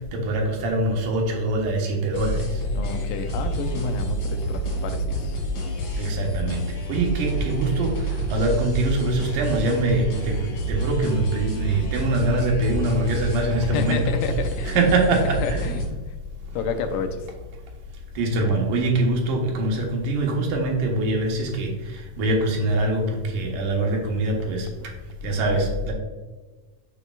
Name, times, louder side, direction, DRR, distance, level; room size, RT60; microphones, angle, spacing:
voice 1, 0.1-2.4 6.0-6.6 6.9-14.0 14.6-15.7 18.2-24.7 25.2-25.9, right 2 dB, 80° right, 0 dB, 2.8 m, -23 dB
sound 1, 2.1-15.8, right 1 dB, 55° left, 3.2 m, -28 dB
voice 2, 2.7-5.4 13.7-14.8 15.4-16.0 16.5-17.3 25.5-25.7, left 5 dB, 85° left, 7 dB, 2.2 m, -30 dB
7.2 x 6.7 x 2.3 m, 1.3 s
omnidirectional pair, 3.7 m